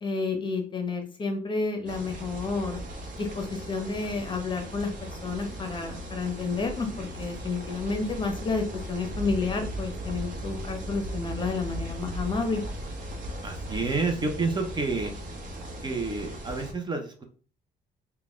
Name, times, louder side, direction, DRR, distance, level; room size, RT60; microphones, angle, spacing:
voice 1, 0.0-2.8 3.2-12.6, left 4 dB, 30° left, 5 dB, 0.8 m, -30 dB
sound 1, 1.9-16.7, equal, 50° right, 1.0 m, -37 dB
voice 2, 13.4-15.1 15.8-17.2, right 3 dB, 25° right, 5 dB, 0.6 m, -29 dB
3.9 x 2.3 x 3.5 m, 0.41 s
cardioid pair, 110°, 17 cm